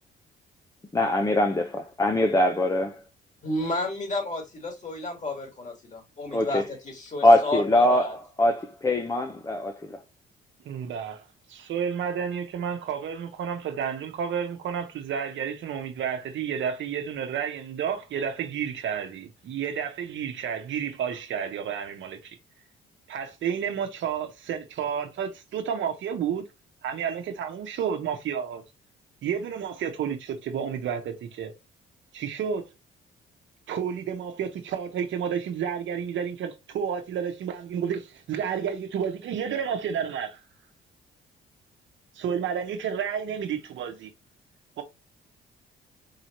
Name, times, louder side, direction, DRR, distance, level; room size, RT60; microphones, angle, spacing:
voice 1, 0.9-2.9 6.3-6.6 7.2-9.7, left 1 dB, 15° left, 0.6 m, -22 dB
voice 2, 3.4-8.2, left 1 dB, 35° left, 2.3 m, -32 dB
voice 3, 10.6-22.4 23.1-26.4 26.8-28.6 29.2-31.5 32.1-32.6 33.7-40.4 42.1-44.1 44.8-44.9, right 8 dB, 70° right, 1.0 m, -31 dB
4.8 x 2.8 x 3.0 m
cardioid pair, 90°, 20 cm